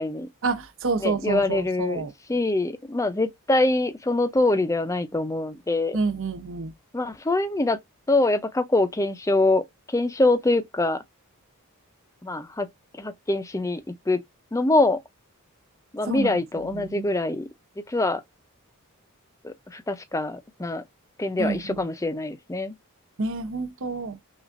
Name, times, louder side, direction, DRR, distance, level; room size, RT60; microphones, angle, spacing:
voice 1, 0.4-2.1 5.9-6.7 16.1-17.0 21.4-21.8 23.2-24.2, right 4 dB, 60° right, 0.7 m, -29 dB
voice 2, 1.0-6.0 6.9-7.8 8.1-11.0 12.2-12.7 13.0-14.2 14.5-15.0 15.9-17.5 17.8-18.2 19.4-20.8 21.2-22.7, left 2 dB, 15° left, 0.5 m, -24 dB
6.0 x 2.4 x 2.5 m
head